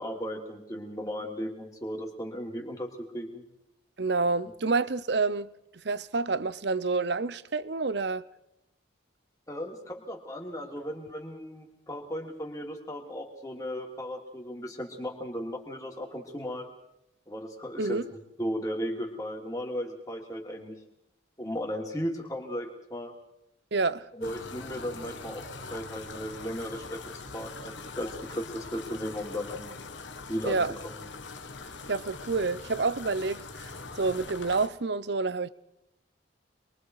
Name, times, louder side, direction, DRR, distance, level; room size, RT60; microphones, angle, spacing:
voice 1, 0.0-3.4 9.5-16.7 17.3-20.8 21.4-23.1 24.2-25.4 25.7-27.0 27.3-29.7 30.3-30.6, equal, 15° left, 3.2 m, -36 dB
voice 2, 4.0-5.5 5.8-8.2 17.8-18.0 23.7-24.1 30.5-30.7 31.9-35.5, right 3 dB, 60° right, 0.7 m, -28 dB
sound 1, 24.2-34.7, left 4 dB, 70° left, 1.6 m, -42 dB
27.5 x 22.5 x 4.9 m
head